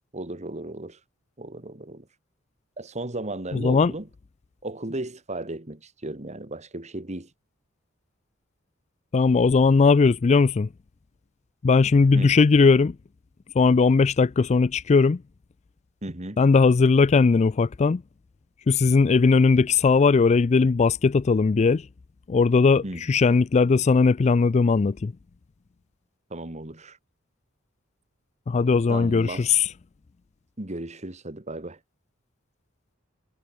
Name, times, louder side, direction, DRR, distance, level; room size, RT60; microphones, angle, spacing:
voice 1, 0.1-1.0 1.4-2.1 2.8-4.1 4.6-7.3 12.1-12.4 16.0-16.4 22.8-23.0 26.3-27.0 28.9-29.5 30.6-31.8, right 2 dB, 35° right, 2.3 m, -35 dB
voice 2, 3.5-3.9 9.1-10.7 11.6-12.9 13.6-15.2 16.4-18.0 18.7-21.8 22.3-25.1 28.5-29.7, left 4 dB, 35° left, 0.4 m, -19 dB
head